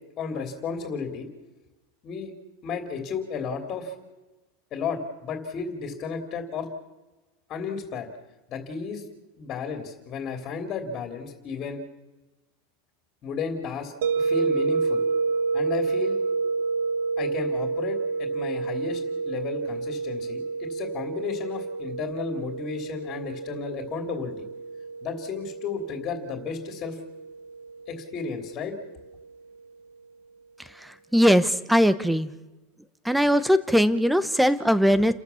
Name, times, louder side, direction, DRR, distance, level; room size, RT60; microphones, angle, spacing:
voice 1, 0.2-1.3 2.0-2.3 2.6-3.9 4.7-6.7 7.5-8.1 8.5-9.0 9.4-11.8 13.2-15.0 15.5-16.2 17.2-24.5 25.0-27.0 27.9-28.8, left 5 dB, 30° left, 5 dB, 3.1 m, -33 dB
sound 1, 14.0-28.9, right 4 dB, 75° right, 1.1 m, -29 dB
voice 2, 30.8-32.3 33.0-35.1, equal, ahead, 14 dB, 0.9 m, -20 dB
30.0 x 14.5 x 7.1 m, 1.1 s
supercardioid pair, 155°, 0 cm